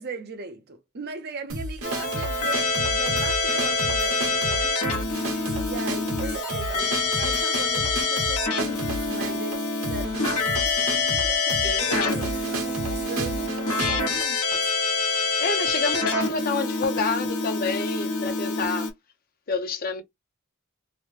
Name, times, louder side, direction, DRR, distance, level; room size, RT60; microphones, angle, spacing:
voice 1, 0.0-4.8 5.6-8.8 9.1-14.6, right 3 dB, 45° right, 0.5 m, -38 dB
sound 1, 1.5-14.8, right 1 dB, 70° right, 1.1 m, -33 dB
Keyboard (musical), 1.8-18.9, left 3 dB, 85° left, 1.0 m, -26 dB
voice 2, 11.6-12.2 15.1-18.9 19.5-20.0, left 4 dB, 40° left, 0.6 m, -29 dB
3.0 x 2.0 x 3.1 m
head